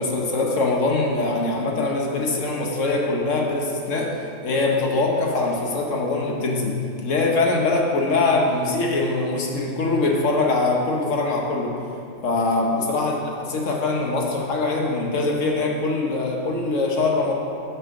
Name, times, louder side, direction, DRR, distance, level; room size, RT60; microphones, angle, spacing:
voice 1, 0.0-4.1 4.4-6.7 7.0-11.7 12.2-13.1 13.5-17.4, left 3 dB, 45° left, 0 dB, 1.1 m, -22 dB
7.4 x 5.7 x 6.4 m, 2.4 s
omnidirectional pair, 2.3 m